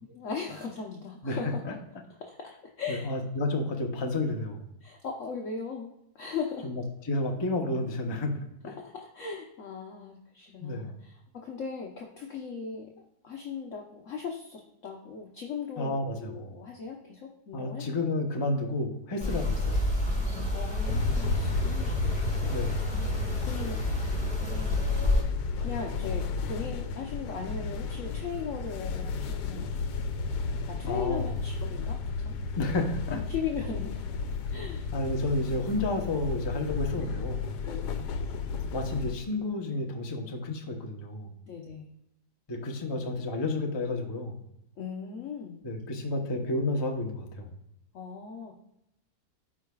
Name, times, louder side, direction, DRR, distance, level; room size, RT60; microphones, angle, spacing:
voice 1, 0.1-1.8 2.2-3.1 4.8-6.7 8.7-12.9 13.2-17.9 19.2-19.4 20.5-22.3 22.7-23.8 24.1-24.9 25.6-29.9 30.7-32.4 33.1-34.1 34.5-34.9 35.4-35.6 37.6-38.1 41.5-41.9 44.8-45.7 47.9-48.5, left 6 dB, 55° left, 0 dB, 1.1 m, -38 dB
voice 2, 1.2-1.7 2.9-4.6 6.6-8.4 10.6-10.9 15.8-16.4 17.5-19.9 22.5-22.8 30.8-31.3 32.6-33.2 34.9-37.4 38.7-41.3 42.5-44.3 45.6-47.5, left 2 dB, 25° left, 2 dB, 0.6 m, -31 dB
sound 1, 19.2-25.2, left 1 dB, 5° left, 1.6 m, -29 dB
sound 2, 20.8-39.2, left 4 dB, 85° left, 1.2 m, -33 dB
13.0 x 4.8 x 2.3 m, 0.82 s
omnidirectional pair, 1.8 m